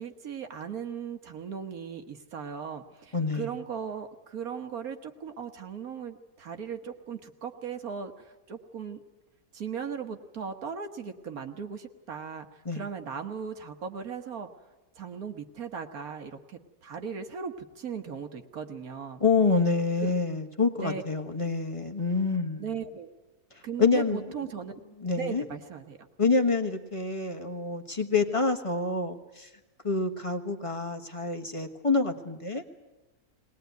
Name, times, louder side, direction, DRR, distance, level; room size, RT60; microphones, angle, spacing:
voice 1, 0.0-9.0 9.5-12.5 12.7-14.5 15.0-19.2 20.0-20.1 20.8-21.0 22.6-23.1 23.6-24.8 25.2-26.0, right 6 dB, 70° right, 6 dB, 1.6 m, -37 dB
voice 2, 3.1-3.5 12.6-12.8 19.2-22.6 23.8-24.2 25.0-25.4 26.2-29.5 29.8-32.6, left 4 dB, 20° left, 6 dB, 1.3 m, -27 dB
20.0 x 19.5 x 9.3 m, 1.1 s
omnidirectional pair, 1.7 m